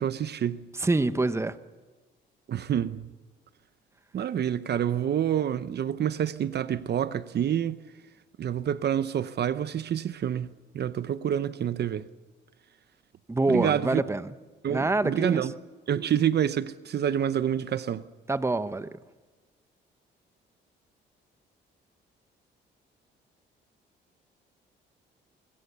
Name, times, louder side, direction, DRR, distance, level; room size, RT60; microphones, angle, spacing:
voice 1, 0.0-0.6 2.5-3.1 4.1-7.8 8.4-10.5 10.7-12.1 13.5-14.0 14.6-15.5 15.9-18.0, right 9 dB, 55° right, 0.9 m, -27 dB
voice 2, 0.8-1.6 13.3-14.3 14.7-15.5 18.3-19.0, right 2 dB, 15° right, 1.0 m, -26 dB
25.0 x 23.0 x 6.9 m
cardioid pair, 90°, 20 cm